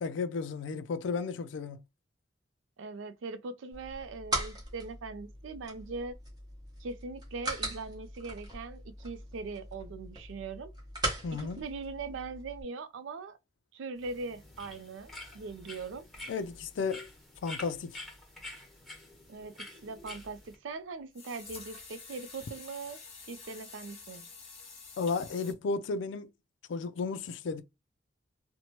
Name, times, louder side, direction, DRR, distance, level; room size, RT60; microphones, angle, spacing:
voice 1, 0.0-1.8 11.2-11.6 16.3-17.1 17.4-18.0 25.0-26.3 26.7-27.6, left 4 dB, 70° left, 0.4 m, -33 dB
voice 2, 2.8-6.2 6.8-10.7 11.4-13.4 13.7-16.1 19.3-23.0 23.3-24.2, right 4 dB, 85° right, 0.4 m, -41 dB
sound 1, 3.7-12.6, right 1 dB, 20° right, 1.0 m, -40 dB
sound 2, 14.0-20.5, left 2 dB, ahead, 1.2 m, -48 dB
sound 3, 21.1-25.5, left 4 dB, 35° left, 0.9 m, -48 dB
2.9 x 2.1 x 2.9 m
head